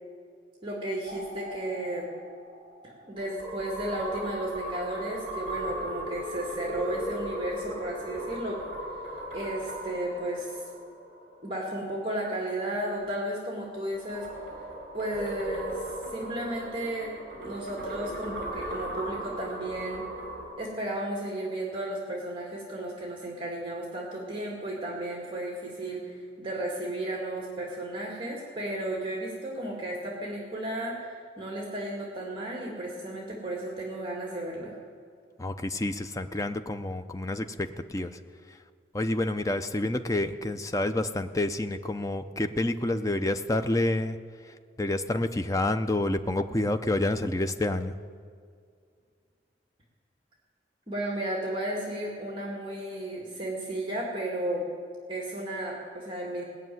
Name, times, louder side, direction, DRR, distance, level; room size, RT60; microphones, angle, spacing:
voice 1, 0.6-2.1 2.8-8.9 9.3-10.6 11.4-14.3 14.9-20.1 20.6-34.8 50.9-54.7 55.1-56.4, right 1 dB, 30° right, -2 dB, 2.2 m, -34 dB
sound 1, 1.0-11.6 13.6-20.5, right 1 dB, 45° right, 4.8 m, -38 dB
voice 2, 35.4-38.1 38.9-44.2 44.8-47.9, left 1 dB, 20° left, 8 dB, 0.5 m, -28 dB
19.0 x 6.6 x 9.3 m, 2.2 s
head